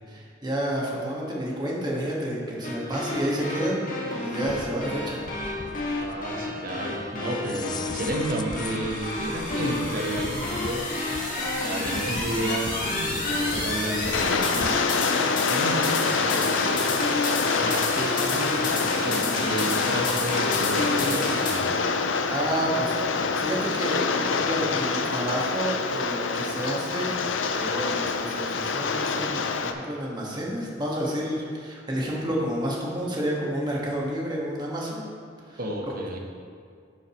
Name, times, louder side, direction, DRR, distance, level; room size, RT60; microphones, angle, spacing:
voice 1, 0.1-3.8 4.2-5.2 22.0-27.2 27.5-35.0 35.5-35.6 35.9-36.0, right 1 dB, 25° right, -4 dB, 1.5 m, -30 dB
sound 1, 2.6-21.5, left 2 dB, 45° left, 1.7 m, -30 dB
sound 2, 4.5-14.8, left 3 dB, 20° left, 0.3 m, -40 dB
voice 2, 6.0-10.9 11.2-11.3 11.6-15.1 15.5-16.9 17.6-21.7 35.6-36.2, right 1 dB, 50° right, 1 dB, 1.0 m, -31 dB
Rain, 14.0-29.7, left 4 dB, 75° left, 0.5 m, -26 dB
11.0 x 6.5 x 3.0 m, 2.2 s
head